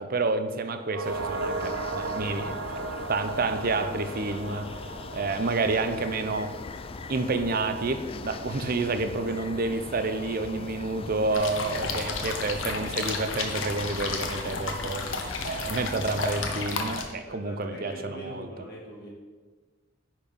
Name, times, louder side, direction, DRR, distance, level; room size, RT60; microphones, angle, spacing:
voice 1, 0.0-4.7 5.1-6.6 7.1-18.5, right 3 dB, 50° right, 9 dB, 0.6 m, -29 dB
sound 1, 0.8-9.3 9.6-9.7, right 3 dB, 90° right, 0.7 m, -37 dB
sound 2, 1.0-16.7, left 4 dB, 30° left, 0.3 m, -40 dB
sound 3, 11.3-17.0, left 3 dB, 85° left, 1.1 m, -32 dB
voice 2, 17.2-19.1, right 1 dB, 55° left, -5 dB, 2.9 m, -42 dB
10.0 x 4.5 x 5.3 m, 1.4 s
head